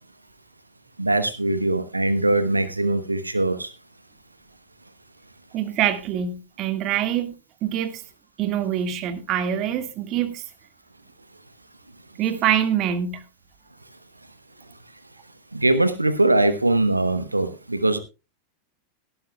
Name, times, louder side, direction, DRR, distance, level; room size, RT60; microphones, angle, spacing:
voice 1, 1.0-3.7 15.5-18.0, right 2 dB, 85° right, 1.0 m, -21 dB
voice 2, 5.5-7.3 7.6-8.0 8.4-10.4 12.2-13.2, right 10 dB, 35° right, 1.9 m, -24 dB
17.5 x 12.5 x 2.3 m
figure-of-eight pair, 90°, 0 cm